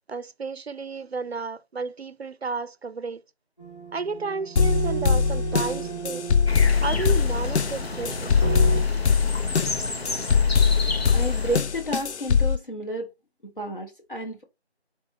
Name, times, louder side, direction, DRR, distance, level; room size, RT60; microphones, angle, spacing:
voice 1, 0.1-3.2 3.9-6.3 6.8-8.5, right 4 dB, 70° right, 0.5 m, -32 dB
sound 1, 3.6-8.8, right 9 dB, 30° left, 1.8 m, -33 dB
sound 2, 4.6-12.6, left 6 dB, 85° left, 0.5 m, -22 dB
sound 3, 6.5-11.6, left 3 dB, 70° left, 0.9 m, -32 dB
voice 2, 11.1-13.1 13.4-14.4, right 1 dB, 50° left, 1.3 m, -31 dB
4.3 x 3.3 x 3.5 m
figure-of-eight pair, 180°, 32 cm